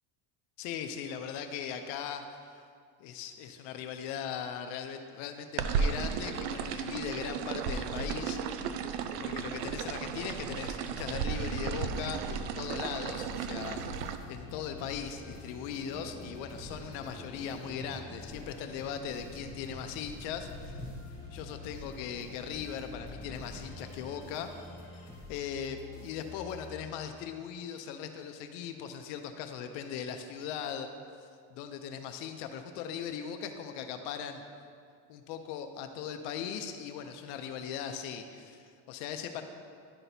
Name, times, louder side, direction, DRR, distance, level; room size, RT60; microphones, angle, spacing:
voice 1, 0.6-2.2 2.5-2.6 3.0-8.4 9.2-20.8 21.3-24.5 25.3-30.9 31.5-34.4 35.1-39.4, left 8 dB, 70° left, 7 dB, 0.6 m, -39 dB
sound 1, 5.6-14.2, right 6 dB, 90° right, 0.6 m, -34 dB
sound 2, 9.1-24.8, left 1 dB, 5° left, 1.6 m, -48 dB
sound 3, 13.1-27.3, left 4 dB, 25° left, 1.8 m, -49 dB
11.0 x 5.9 x 2.7 m, 2.2 s
cardioid pair, 165°, 49 cm